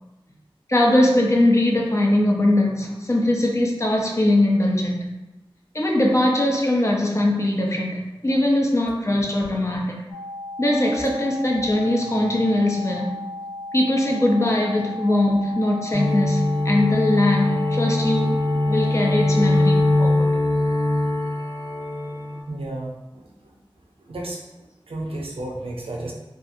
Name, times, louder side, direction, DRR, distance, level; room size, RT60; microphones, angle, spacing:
voice 1, 0.7-5.1 5.7-10.0 10.6-13.2 13.7-18.4 18.7-20.3, left 1 dB, 30° left, -1 dB, 0.5 m, -21 dB
sound 1, 10.1-20.2, left 2 dB, 85° left, 0.4 m, -35 dB
sound 2, 15.9-22.4, left 2 dB, 60° left, 0.9 m, -22 dB
voice 2, 22.0-23.5 24.0-26.1, right 1 dB, 85° right, -1 dB, 0.5 m, -34 dB
2.7 x 2.4 x 2.5 m, 0.99 s
wide cardioid pair, 65°, 9 cm